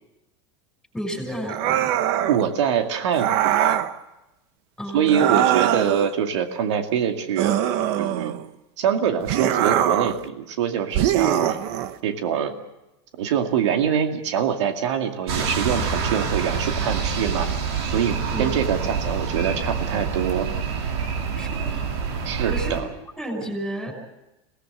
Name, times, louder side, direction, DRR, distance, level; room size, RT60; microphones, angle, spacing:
voice 1, 0.9-2.0 4.8-5.5 18.3-18.6 21.4-21.8 22.4-22.8 23.2-23.9, equal, ahead, 4 dB, 6.0 m, -32 dB
sound 1, 1.5-2.4 3.1-3.9 5.1-6.1 7.4-8.5 9.3-10.2 10.9-12.0, right 12 dB, 50° right, 1.3 m, -22 dB
voice 2, 2.3-3.8 4.9-7.5 8.0-8.3 8.8-11.6 12.0-12.5 13.2-17.5 17.9-20.5 22.2-22.8, right 8 dB, 90° right, 4 dB, 2.3 m, -24 dB
sound 2, 15.3-22.8, right 5 dB, 70° right, 5.4 m, -26 dB
25.5 x 18.5 x 7.5 m, 0.95 s
supercardioid pair, 155°, 15 cm